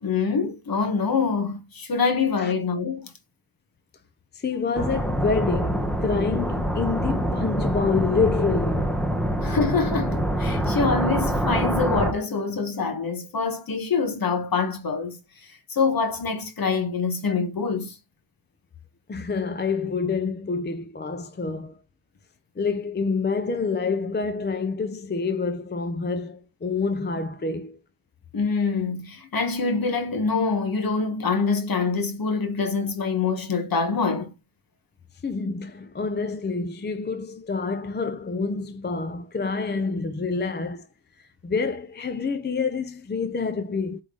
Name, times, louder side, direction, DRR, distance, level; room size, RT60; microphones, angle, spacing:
voice 1, 0.0-3.1 9.4-15.2 15.7-17.9 28.3-34.3, left 4 dB, 50° left, 1.4 m, -25 dB
voice 2, 4.3-9.0 19.1-21.8 22.6-27.8 35.2-40.9 41.2-44.0, left 4 dB, 25° left, 0.5 m, -27 dB
sound 1, 4.7-12.1, equal, ahead, 1.0 m, -25 dB
8.4 x 3.7 x 3.9 m
wide cardioid pair, 175°, 46 cm